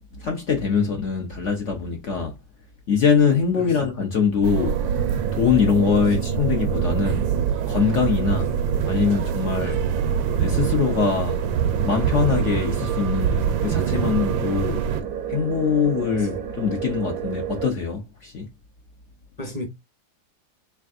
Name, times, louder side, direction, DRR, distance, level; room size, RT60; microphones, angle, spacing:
voice 1, 0.1-2.4 2.9-4.8 5.3-7.3 7.7-8.5 8.9-9.8 10.4-11.4 11.8-14.9 15.3-18.5, left 6 dB, 55° left, 0.8 m, -23 dB
sound 1, 4.4-15.0, right 7 dB, 90° right, 1.4 m, -25 dB
sound 2, 4.6-17.7, right 9 dB, 70° right, 1.0 m, -32 dB
voice 2, 16.1-16.4 19.4-19.7, equal, 25° left, 1.0 m, -34 dB
3.7 x 3.4 x 2.4 m
omnidirectional pair, 2.0 m